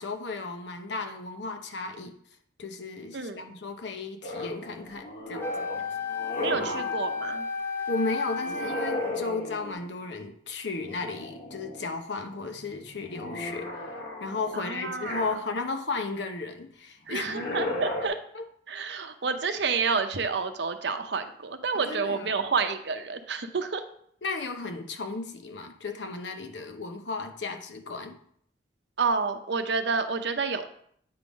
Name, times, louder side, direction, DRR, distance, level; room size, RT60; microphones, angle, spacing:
voice 1, 0.0-2.2 2.6-5.7 7.9-17.3 18.3-18.4 21.7-22.3 24.2-28.2, left 3 dB, 70° left, 6 dB, 0.8 m, -34 dB
sound 1, 4.2-7.0 8.4-9.9 10.9-11.9 12.3-15.8 17.1-18.1, left 2 dB, 50° left, 1.3 m, -35 dB
Wind instrument woodwind instrument, 5.4-9.2, left 4 dB, 10° left, 0.5 m, -33 dB
voice 2, 6.4-7.5 14.5-15.2 17.1-18.2 18.7-23.8 29.0-30.7, right 5 dB, 65° right, 8 dB, 0.7 m, -29 dB
8.7 x 3.8 x 5.0 m, 0.64 s
head